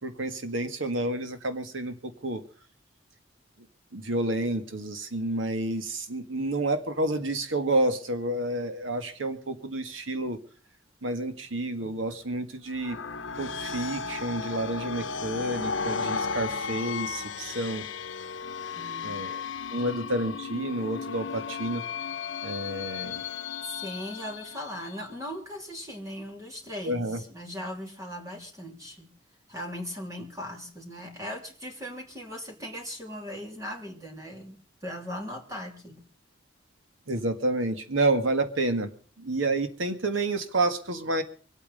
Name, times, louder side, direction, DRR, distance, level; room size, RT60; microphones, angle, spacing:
voice 1, 0.0-2.4 3.9-10.4 11.0-13.0 13.4-17.9 19.0-19.4 19.7-21.8 22.4-23.3 26.9-27.2 37.1-38.9 39.2-41.2, right 2 dB, 85° right, 9 dB, 1.9 m, -29 dB
sound 1, 12.7-25.2, left 5 dB, 75° left, 0.9 m, -35 dB
voice 2, 18.7-19.3 23.6-29.1 29.5-36.0, equal, 15° right, 1 dB, 3.0 m, -39 dB
24.5 x 8.8 x 5.4 m, 0.39 s
head